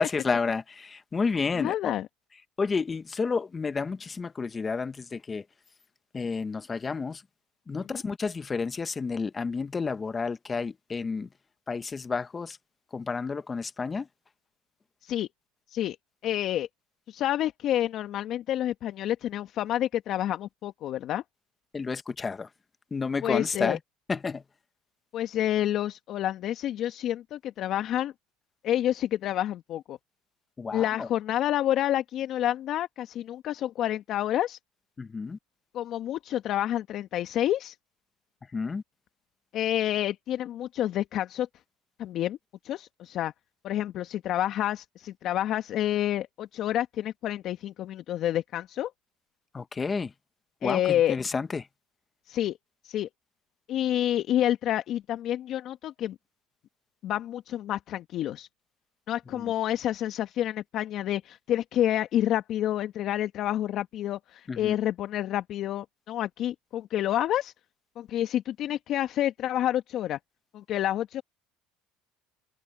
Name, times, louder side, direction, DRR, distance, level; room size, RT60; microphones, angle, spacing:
voice 1, 0.0-1.9 2.6-5.4 6.1-7.2 7.7-11.3 11.7-12.6 12.9-14.1 21.7-22.5 22.9-23.8 24.1-24.4 30.6-31.1 35.0-35.4 38.5-38.8 49.5-50.1 50.6-51.7 59.3-59.5 64.5-64.7, left 4 dB, 25° left, 1.5 m, -30 dB
voice 2, 1.6-2.1 7.9-8.0 15.0-15.3 15.7-16.0 16.2-16.7 17.1-21.2 23.2-23.8 25.1-28.1 28.6-30.0 30.7-34.6 35.7-37.7 39.5-41.5 42.0-42.4 42.6-43.3 43.6-48.9 50.6-51.2 52.3-52.6 52.8-53.1 53.7-56.1 57.0-58.5 59.1-67.5 68.0-70.2 70.5-71.2, left 12 dB, 55° left, 1.6 m, -28 dB
supercardioid pair, 90°, 0 cm